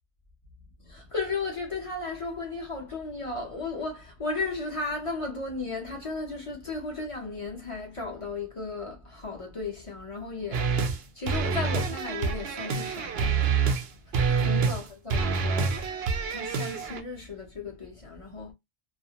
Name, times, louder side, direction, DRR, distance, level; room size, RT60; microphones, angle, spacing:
voice 1, 0.8-15.9 16.2-18.5, left 3 dB, 35° left, 0.7 m, -35 dB
sound 1, 10.5-11.0 11.3-13.9 14.1-14.8 15.1-17.0, right 5 dB, 65° right, 0.8 m, -27 dB
2.4 x 2.1 x 2.8 m
omnidirectional pair, 1.2 m